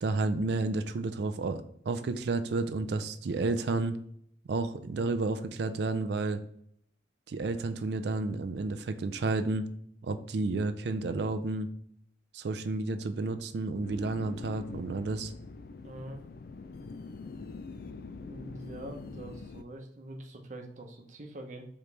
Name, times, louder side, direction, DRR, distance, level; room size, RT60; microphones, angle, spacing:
voice 1, 0.0-4.0 4.5-6.4 7.3-9.7 10.0-11.7 12.3-15.3, right 3 dB, 65° right, 9 dB, 0.4 m, -31 dB
sound 1, 13.8-19.6, left 4 dB, 55° left, 0.4 m, -44 dB
voice 2, 15.8-16.2 18.2-21.7, right 1 dB, 40° right, 3 dB, 0.8 m, -44 dB
5.0 x 3.1 x 3.2 m, 0.70 s
head